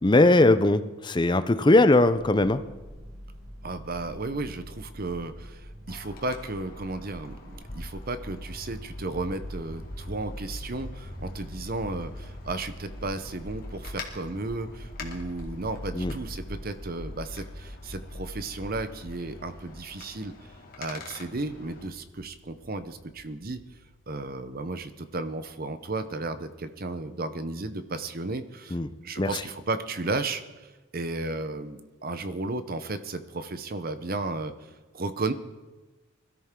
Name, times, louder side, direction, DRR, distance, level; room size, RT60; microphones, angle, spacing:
voice 1, 0.0-2.6 15.9-16.1 28.7-28.9 29.2-29.3, left 2 dB, 20° left, 11 dB, 0.5 m, -20 dB
sound 1, 2.1-12.9, equal, 85° right, 6.2 m, -45 dB
voice 2, 3.6-20.3 20.8-23.6 24.1-35.3, right 2 dB, 45° right, 11 dB, 0.8 m, -34 dB
Wind, 5.9-21.9, left 3 dB, 45° left, 2.0 m, -46 dB
sound 2, 8.1-25.1, left 1 dB, 75° left, 2.4 m, -43 dB
21.0 x 13.0 x 3.7 m, 1.2 s
head